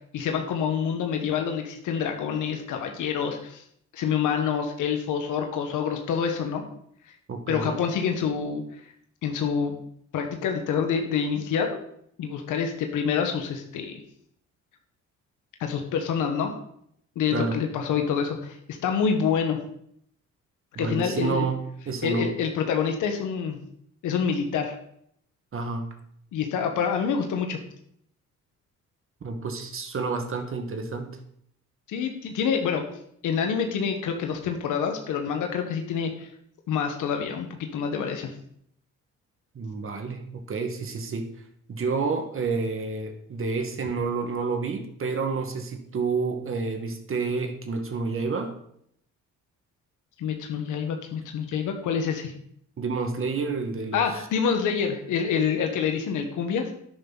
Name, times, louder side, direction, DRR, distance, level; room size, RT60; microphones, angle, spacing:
voice 1, 0.1-3.6 3.9-6.6 7.5-8.6 9.2-9.7 10.1-11.7 12.2-14.0 15.6-16.6 17.1-19.6 20.8-21.5 22.0-23.6 24.0-24.8 26.3-27.6 31.9-32.8 33.2-36.3 36.7-38.3 50.2-52.3 53.9-56.7, left 7 dB, 85° left, 5 dB, 1.6 m, -27 dB
voice 2, 7.3-7.8 17.3-17.6 20.8-21.6 21.9-22.3 25.5-25.9 29.2-31.1 39.6-41.3 41.7-48.5 52.8-54.1, right 4 dB, 45° right, 5 dB, 1.9 m, -29 dB
10.5 x 9.2 x 4.2 m, 0.69 s
cardioid pair, 90°, 30 cm